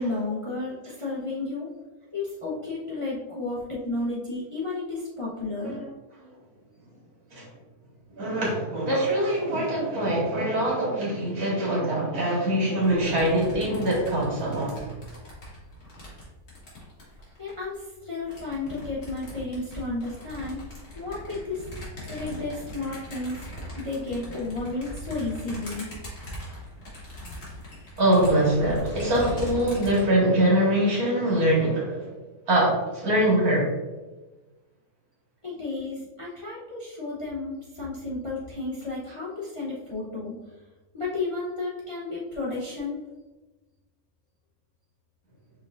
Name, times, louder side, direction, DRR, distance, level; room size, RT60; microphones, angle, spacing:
voice 1, 0.0-1.7 2.1-5.8 17.4-21.7 22.1-25.9 35.4-40.4 40.9-43.0, left 3 dB, 30° left, -6 dB, 0.7 m, -32 dB
voice 2, 8.1-14.8 28.0-32.1 32.5-33.7, right 1 dB, 75° right, -5 dB, 2.1 m, -23 dB
sound 1, 12.8-17.6 18.2-30.0, equal, 55° left, 1.9 m, -40 dB
5.4 x 3.8 x 2.5 m, 1.2 s
omnidirectional pair, 1.6 m